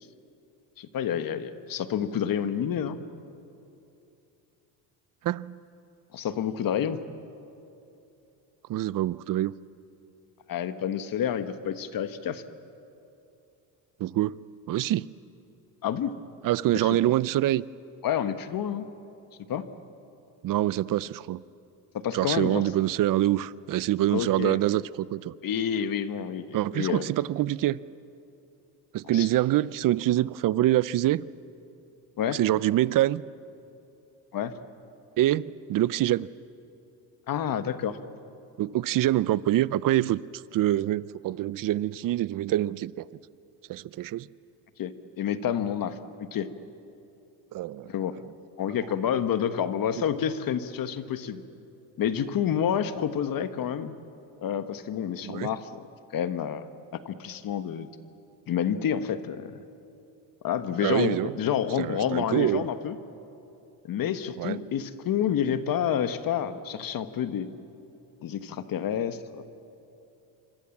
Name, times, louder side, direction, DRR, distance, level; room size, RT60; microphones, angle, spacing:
voice 1, 0.8-3.0 6.1-7.0 10.5-12.4 15.8-16.1 16.7-17.0 18.0-18.8 19.5-19.6 21.9-22.6 24.1-24.6 25.4-27.0 29.1-29.3 32.2-32.4 34.3-34.5 37.3-38.0 44.8-44.9 45.2-46.0 46.3-46.5 47.8-48.1 48.6-51.4 52.0-54.0 54.4-55.9 56.1-57.9 58.5-59.6 60.4-62.9 63.9-67.5 68.2-69.4, left 9 dB, 50° left, 1.5 m, -29 dB
voice 2, 5.2-5.6 8.7-9.5 14.0-14.4 14.7-15.1 16.4-17.7 20.4-21.4 22.1-25.3 26.5-27.8 28.9-31.2 32.3-33.2 35.2-36.3 38.6-40.2 40.5-43.1 43.7-44.3 47.5-47.9 55.2-55.5 60.8-61.3 61.8-62.6 64.4-64.6, right 14 dB, 50° right, 0.6 m, -25 dB
26.5 x 25.5 x 7.3 m
cardioid pair, 105°, 42 cm